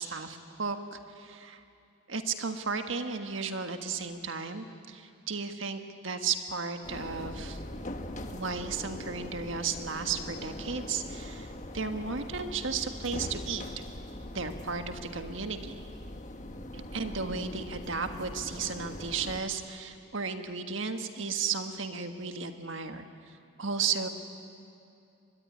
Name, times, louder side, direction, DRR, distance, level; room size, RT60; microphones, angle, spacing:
voice 1, 0.0-1.6 2.1-7.6 8.3-11.5 11.7-13.6 14.3-15.8 16.7-23.0 23.6-24.1, right 5 dB, 75° right, 7 dB, 1.6 m, -34 dB
sound 1, 6.8-19.4, left 1 dB, 35° left, 1.3 m, -41 dB
24.0 x 21.5 x 9.7 m, 2.5 s
head